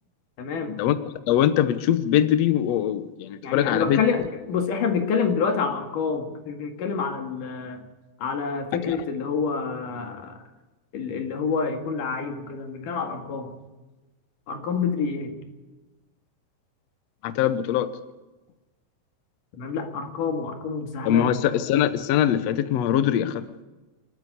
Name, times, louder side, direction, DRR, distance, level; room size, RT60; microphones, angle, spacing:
voice 1, 0.4-0.8 3.4-4.2 4.5-7.8 8.2-10.4 10.9-13.6 14.5-15.4 19.6-21.3, left 5 dB, 65° left, 4 dB, 3.5 m, -27 dB
voice 2, 1.3-4.0 8.8-9.0 17.2-17.9 21.0-23.4, left 10 dB, 80° left, 12 dB, 1.4 m, -22 dB
28.0 x 9.5 x 9.8 m, 1.1 s
omnidirectional pair, 4.3 m